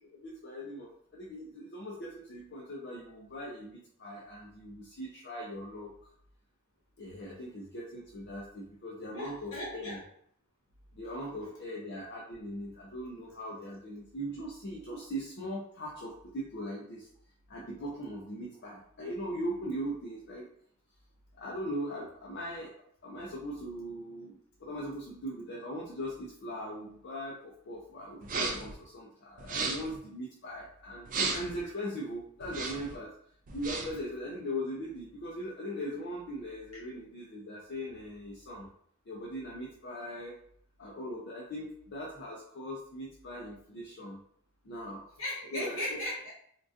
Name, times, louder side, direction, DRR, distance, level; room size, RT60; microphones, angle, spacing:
voice 1, 0.0-5.9 7.0-10.0 11.0-17.1 17.5-20.4 21.4-22.7 23.0-33.1 33.5-38.7 39.1-40.4 40.8-44.2 44.6-45.1 45.5-46.0, equal, 50° left, -4 dB, 0.5 m, -40 dB
voice 2, 9.1-10.0 11.1-11.5 45.2-46.3, left 1 dB, 70° left, -5 dB, 1.4 m, -37 dB
sound 1, 28.2-28.7 29.4-30.0 31.0-31.6 32.4-32.9 33.5-34.0, right 4 dB, 40° right, 0.4 m, -34 dB
3.7 x 2.4 x 2.5 m, 0.64 s
head